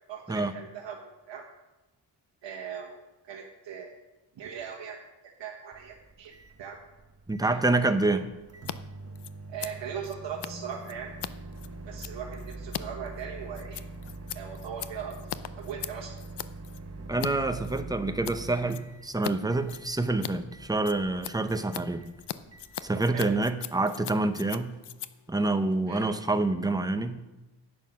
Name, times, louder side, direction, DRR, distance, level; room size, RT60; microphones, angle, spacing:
voice 1, 0.1-1.0 1.3-1.4 2.4-3.0 3.3-4.0 4.4-5.0 5.4-6.3 6.6-6.8 7.4-8.2 9.5-11.1 11.9-13.8 14.3-15.2 15.6-16.1 23.1-23.3 25.9-26.1, right 7 dB, 80° right, -1 dB, 1.4 m, -39 dB
Microwave oven, 5.7-23.7, right 2 dB, 35° right, 1.1 m, -44 dB
voice 2, 7.3-8.3 17.1-22.1 22.8-24.7 25.3-27.2, right 2 dB, 10° right, 8 dB, 0.8 m, -27 dB
Scissors, 8.5-8.8 9.0-17.3 17.6-18.4 18.7-19.3 19.6-26.4, left 11 dB, 65° left, 0.6 m, -40 dB
11.0 x 8.3 x 6.1 m, 1.0 s
wide cardioid pair, 100°, 44 cm